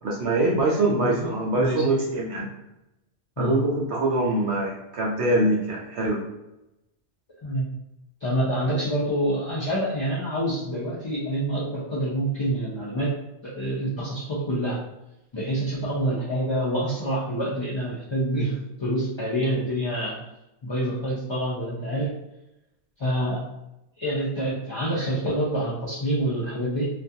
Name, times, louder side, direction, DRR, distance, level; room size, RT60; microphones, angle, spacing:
voice 1, 0.0-2.5 3.4-6.2, right 2 dB, 70° right, -3 dB, 0.8 m, -24 dB
voice 2, 1.0-1.8 3.4-3.6 7.4-7.7 8.2-13.1 13.4-14.8 15.3-20.2 20.6-22.1 23.0-23.4 24.0-26.9, right 1 dB, 45° left, -8 dB, 0.3 m, -27 dB
2.3 x 2.2 x 2.6 m, 0.92 s
omnidirectional pair, 1.2 m